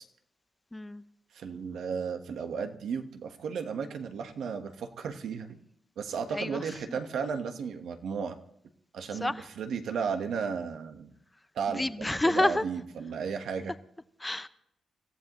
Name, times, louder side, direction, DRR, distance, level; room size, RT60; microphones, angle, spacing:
voice 1, 0.7-1.0 6.3-7.0 9.2-9.4 11.7-12.6 14.2-14.5, left 1 dB, 10° left, 0.6 m, -29 dB
voice 2, 1.3-5.6 6.0-8.4 8.9-11.1 11.5-13.7, right 6 dB, 80° right, 1.3 m, -34 dB
25.0 x 15.0 x 3.1 m
wide cardioid pair, 145°, 0 cm